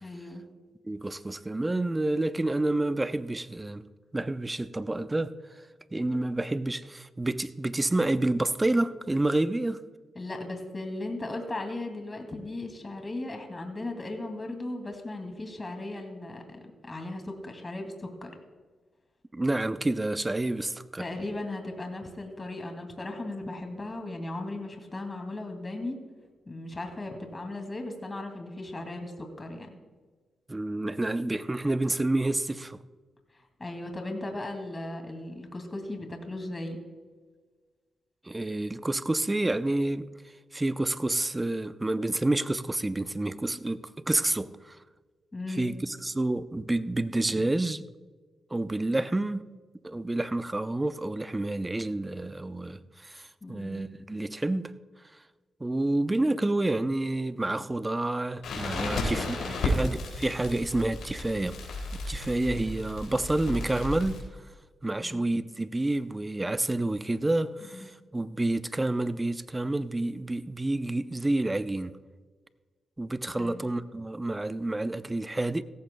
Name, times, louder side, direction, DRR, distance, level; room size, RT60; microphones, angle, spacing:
voice 1, 0.0-0.5 10.2-18.3 21.0-26.0 26.5-29.8 33.6-36.8 45.3-45.8 53.4-53.9 58.8-59.8 65.0-65.2 67.6-67.9 73.3-73.7, left 2 dB, 25° left, 2.4 m, -37 dB
voice 2, 0.9-3.9 4.1-5.3 5.9-9.8 19.3-21.0 30.5-32.8 38.3-40.1 40.5-44.8 45.6-47.8 48.5-49.4 49.8-54.7 55.6-59.4 59.6-61.6 62.1-64.2 64.8-72.0 73.0-75.6, right 2 dB, 20° right, 0.6 m, -29 dB
Crackle, 58.4-64.2, left 2 dB, 80° left, 4.0 m, -33 dB
17.0 x 14.5 x 2.3 m
cardioid pair, 75°, 0 cm